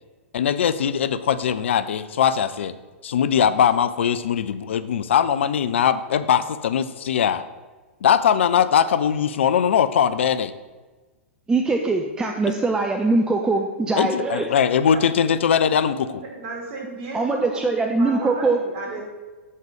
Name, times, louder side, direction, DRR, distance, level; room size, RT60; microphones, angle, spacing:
voice 1, 0.3-2.7 3.0-7.4 8.0-10.5 14.0-16.2, left 8 dB, 65° left, 14 dB, 0.4 m, -20 dB
voice 2, 11.5-14.5 17.1-18.6, right 3 dB, 10° right, 3 dB, 0.5 m, -22 dB
voice 3, 14.4-19.0, right 3 dB, 45° right, -1 dB, 2.6 m, -36 dB
7.4 x 5.5 x 5.1 m, 1.3 s
figure-of-eight pair, 105°, 7 cm